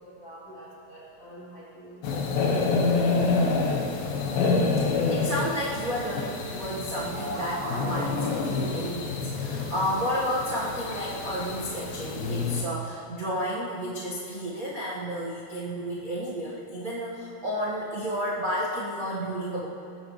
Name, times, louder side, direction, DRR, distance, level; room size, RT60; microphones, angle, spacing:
voice 1, 0.0-2.2 2.6-3.6, equal, 40° left, -8 dB, 3.9 m, -46 dB
sound 1, 2.0-12.6, left 4 dB, 75° left, 2.8 m, -28 dB
voice 2, 4.8-19.7, equal, 60° right, -7 dB, 0.8 m, -31 dB
sound 2, 6.7-8.6, right 1 dB, 80° right, 4.6 m, -36 dB
20.0 x 14.5 x 3.2 m, 2.8 s
omnidirectional pair, 4.3 m